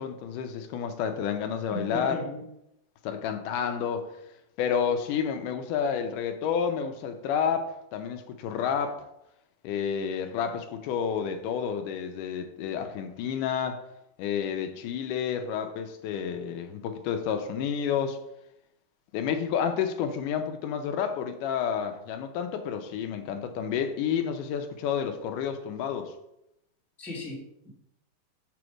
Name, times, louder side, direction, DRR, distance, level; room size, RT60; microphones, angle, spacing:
voice 1, 0.0-2.2 3.0-4.1 4.6-9.0 9.6-13.8 14.2-18.2 19.1-26.1, left 7 dB, 80° left, 2.0 m, -30 dB
voice 2, 1.7-2.4 27.0-27.7, left 2 dB, ahead, 0.4 m, -36 dB
7.0 x 3.2 x 6.1 m
omnidirectional pair, 4.0 m